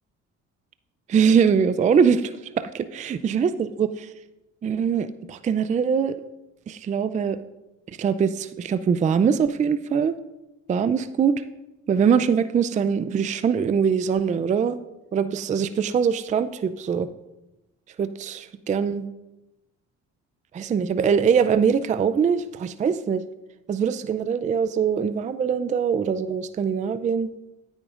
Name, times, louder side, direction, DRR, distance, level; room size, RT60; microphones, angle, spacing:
voice 1, 1.1-4.1 4.6-6.2 6.7-7.4 8.0-10.1 10.7-11.3 11.9-14.8 15.1-17.1 18.0-19.1 20.5-23.2 23.7-27.3, right 6 dB, 25° right, 12 dB, 0.4 m, -22 dB
14.0 x 8.9 x 2.4 m, 0.99 s
cardioid pair, 100°, 29 cm